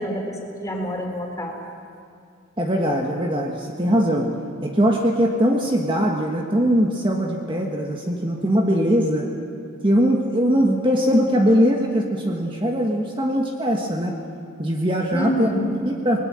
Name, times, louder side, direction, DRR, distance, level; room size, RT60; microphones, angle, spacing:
voice 1, 0.0-1.6 15.1-15.7, equal, 15° left, 1 dB, 3.8 m, -27 dB
voice 2, 2.6-4.3 4.6-9.3 9.8-14.2 14.6-15.5 15.8-16.2, equal, 25° right, 1 dB, 1.5 m, -21 dB
28.0 x 20.0 x 7.6 m, 2.4 s
head